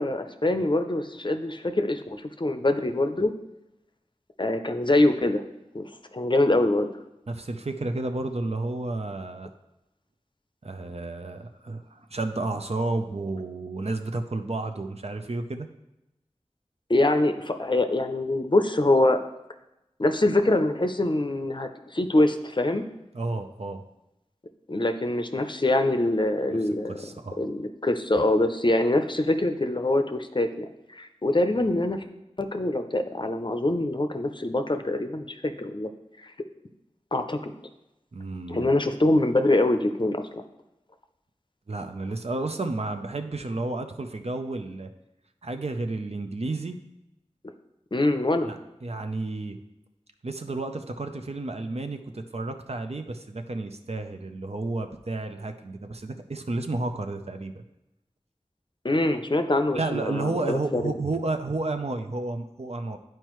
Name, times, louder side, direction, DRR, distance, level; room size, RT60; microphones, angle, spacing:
voice 1, 0.0-3.3 4.4-5.4 5.7-6.9 16.9-19.2 20.0-22.9 24.7-27.0 27.4-30.7 31.0-32.0 32.4-35.9 36.2-36.3 37.1-37.5 38.5-40.4 47.9-48.5 58.8-60.9, left 2 dB, 40° left, 7 dB, 0.6 m, -24 dB
voice 2, 7.3-9.5 10.6-15.7 23.1-23.8 26.9-27.4 38.1-38.7 41.7-44.9 45.4-46.8 48.4-49.6 50.2-57.6 59.7-63.0, right 2 dB, 60° right, 6 dB, 0.6 m, -31 dB
10.5 x 4.5 x 3.1 m, 0.92 s
wide cardioid pair, 45°, 12 cm